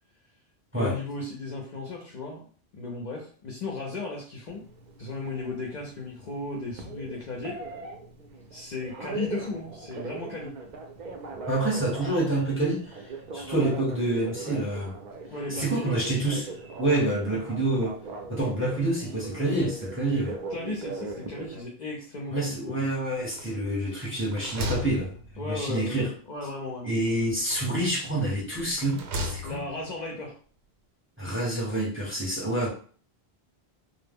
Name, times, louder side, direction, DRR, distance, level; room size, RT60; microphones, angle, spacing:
voice 1, 0.7-4.6 5.0-7.6 8.5-10.6 15.3-16.0 20.5-22.8 25.4-27.2 29.4-30.3, left 3 dB, 55° left, -2 dB, 0.5 m, -36 dB
Telephone, 4.5-21.6, right 3 dB, 55° right, 0.5 m, -40 dB
voice 2, 11.5-15.0 15.5-18.0 18.3-20.3 22.3-25.1 25.4-26.1 26.8-29.6 31.2-32.7, right 1 dB, 15° right, -3 dB, 0.7 m, -27 dB
sound 1, 23.3-23.8 24.1-25.8 27.0-27.9 28.6-29.8, left 1 dB, 85° right, 0.9 m, -36 dB
2.0 x 2.0 x 3.4 m, 0.44 s
omnidirectional pair, 1.1 m